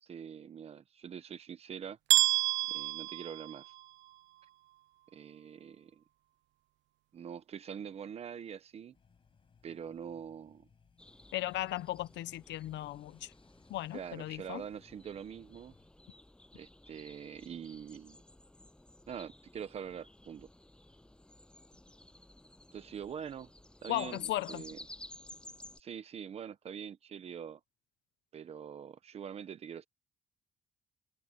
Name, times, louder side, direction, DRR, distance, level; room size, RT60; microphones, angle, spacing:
voice 1, 0.0-2.0 2.7-3.7 5.1-6.0 7.1-9.0 9.6-10.7 13.9-15.7 16.5-18.2 19.1-20.5 22.7-23.5 23.8-24.8 25.8-27.6 28.3-29.8, right 8 dB, 35° right, 1.0 m, -44 dB
sound 1, 2.1-4.1, right 18 dB, 85° right, 0.4 m, -29 dB
sound 2, 8.9-15.9, left 6 dB, 30° left, 5.4 m, -67 dB
sound 3, 11.0-25.8, left 1 dB, 5° left, 7.8 m, -55 dB
voice 2, 11.3-13.3 13.7-14.6 23.9-24.6, left 15 dB, 80° left, 0.8 m, -36 dB
cardioid pair, 175°, 18 cm